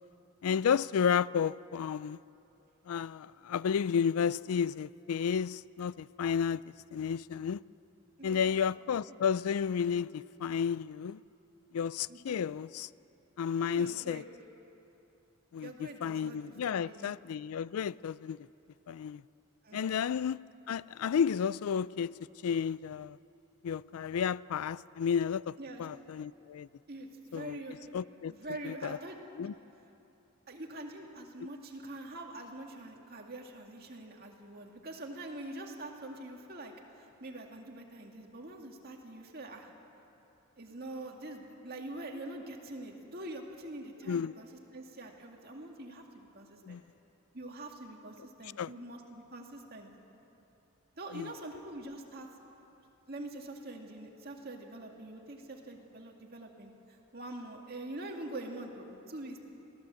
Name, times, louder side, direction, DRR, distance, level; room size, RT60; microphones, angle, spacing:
voice 1, 0.4-2.2 2.9-7.6 8.2-11.2 11.7-12.9 13.4-14.2 15.5-18.5 18.9-19.2 19.7-20.4 20.7-22.2 22.4-23.2 23.6-26.7 27.3-27.6 27.9-28.3 28.6-29.0 29.4-29.5 44.1-44.3 46.6-46.8 48.6-48.7 51.1-51.3, left 7 dB, 85° left, 0.4 m, -32 dB
voice 2, 8.2-8.6 9.1-9.2 12.1-12.4 13.6-14.3 15.6-16.4 16.7-17.1 19.6-20.0 25.6-25.9 26.9-27.8 28.3-29.5 30.5-39.7 40.6-46.8 47.3-49.9 51.0-52.3 52.6-52.7 53.1-59.5, right 1 dB, 45° right, 2.2 m, -45 dB
22.0 x 16.5 x 7.6 m
head